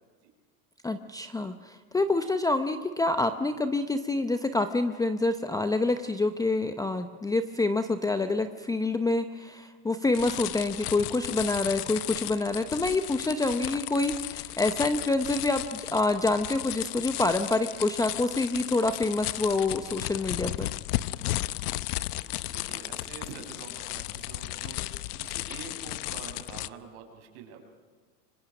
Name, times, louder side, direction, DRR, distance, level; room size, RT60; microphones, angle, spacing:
voice 1, 0.8-20.7, left 2 dB, 10° left, 8 dB, 0.7 m, -27 dB
sound 1, 10.1-26.7, left 17 dB, 75° left, 0.8 m, -35 dB
voice 2, 22.1-27.6, right 6 dB, 55° right, 4 dB, 6.1 m, -46 dB
28.5 x 25.0 x 6.1 m, 1.4 s
supercardioid pair, 130°, 47 cm